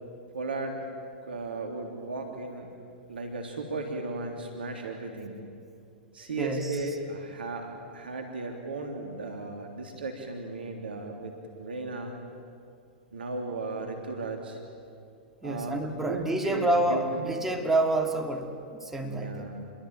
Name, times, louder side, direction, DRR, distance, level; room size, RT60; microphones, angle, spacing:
voice 1, 0.3-0.8 1.3-2.7 3.1-5.4 6.1-12.1 13.1-14.6 15.4-17.3 19.1-19.7, right 3 dB, 75° right, 3 dB, 3.2 m, -35 dB
voice 2, 6.3-6.8 15.4-19.5, right 2 dB, 5° right, 2 dB, 2.8 m, -28 dB
28.0 x 22.0 x 9.0 m, 2.4 s
figure-of-eight pair, 105°, 6 cm